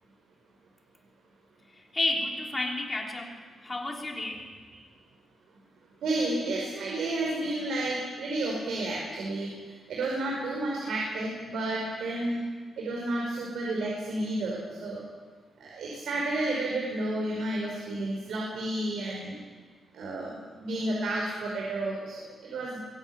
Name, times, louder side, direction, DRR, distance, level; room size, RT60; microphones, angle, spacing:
voice 1, 1.9-3.4 3.6-4.5, left 2 dB, 20° left, 0 dB, 3.5 m, -31 dB
voice 2, 6.0-9.5 9.9-12.4 12.8-15.0 15.6-19.3 19.9-22.8, right 2 dB, 80° right, -2 dB, 5.4 m, -31 dB
23.0 x 16.0 x 9.0 m, 1.5 s
wide cardioid pair, 155°, 0 cm